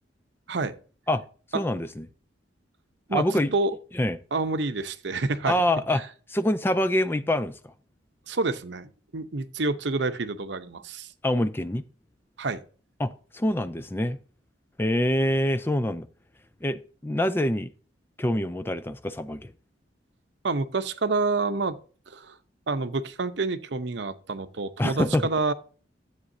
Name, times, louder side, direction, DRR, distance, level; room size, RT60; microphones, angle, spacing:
voice 1, 1.5-2.1 3.1-3.5 3.9-4.2 5.5-6.0 6.3-7.7 11.2-11.8 13.0-14.2 14.8-16.1 16.6-17.7 18.2-19.5 24.8-25.2, left 1 dB, 10° left, 0.4 m, -25 dB
voice 2, 4.3-5.6 8.3-11.1 12.4-12.6 20.4-21.8 22.1-22.4 22.7-25.5, right 3 dB, 60° right, 0.7 m, -28 dB
13.0 x 8.2 x 2.7 m
head